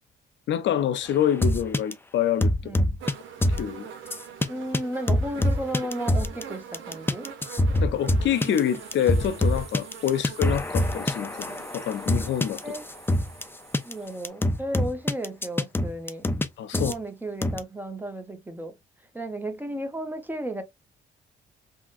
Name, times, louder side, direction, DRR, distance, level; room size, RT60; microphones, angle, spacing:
voice 1, 0.5-2.8 3.6-3.9 7.8-12.7 16.6-16.9, left 10 dB, 65° left, 0.5 m, -27 dB
sound 1, 1.4-1.9 2.4-3.1 3.4-3.6 4.1-4.5 4.7-4.8 5.1-6.4 6.7-13.4 13.7-13.9 14.2-16.5 16.7-16.9 17.4-17.6, left 1 dB, 10° left, 0.4 m, -24 dB
voice 2, 2.6-3.0 4.5-7.3 12.6-12.8 13.8-16.3 16.7-18.7 19.1-20.6, right 1 dB, 10° right, 0.7 m, -34 dB
sound 2, 3.0-14.1 15.0-15.1, right 7 dB, 75° right, 0.8 m, -44 dB
sound 3, 8.3-14.3, right 4 dB, 30° right, 1.0 m, -48 dB
3.6 x 2.1 x 2.4 m
cardioid pair, 90°, 20 cm